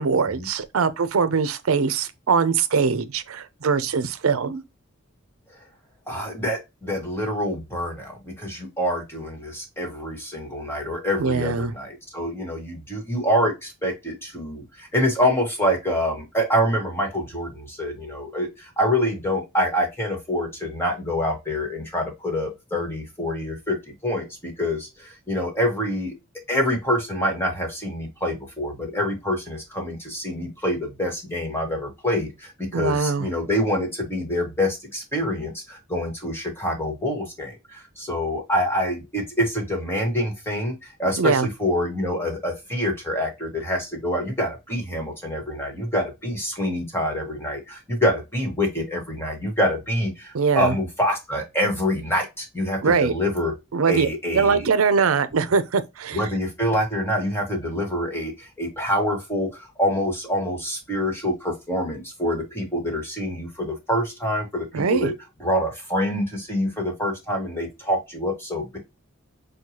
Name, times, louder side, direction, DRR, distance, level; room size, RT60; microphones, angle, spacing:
voice 1, 0.0-4.6 11.2-11.7 32.7-33.3 41.2-41.5 50.3-50.7 52.8-53.1 53.7-54.1 54.3-56.2 64.7-65.1, right 5 dB, 80° right, 0.5 m, -22 dB
voice 2, 6.1-23.8 24.0-26.2 26.5-53.5 53.9-54.7 56.1-65.1 65.4-68.8, equal, 10° left, 1.4 m, -26 dB
6.4 x 2.3 x 2.8 m
head